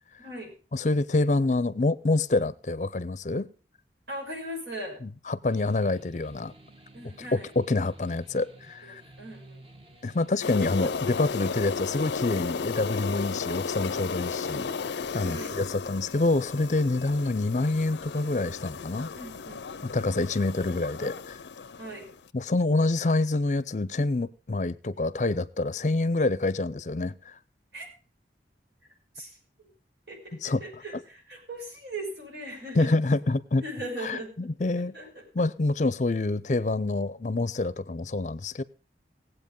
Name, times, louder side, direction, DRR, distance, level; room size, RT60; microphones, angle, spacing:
voice 1, 0.2-0.5 4.1-5.0 6.9-7.5 8.8-9.7 15.2-15.6 19.1-20.1 21.8-22.1 27.7-27.9 29.1-29.7 30.1-32.9 33.6-34.5 34.7-35.2, right 1 dB, 75° right, 5.9 m, -39 dB
voice 2, 0.7-3.5 5.0-6.5 7.3-9.0 10.0-19.1 19.8-21.4 22.3-27.4 30.4-30.6 32.8-33.6 34.0-34.9 35.3-38.6, left 2 dB, 40° left, 0.5 m, -27 dB
sound 1, 5.5-11.4, right 1 dB, 30° right, 1.2 m, -53 dB
sound 2, 10.4-22.2, left 5 dB, 90° left, 0.5 m, -34 dB
18.0 x 8.0 x 5.2 m
head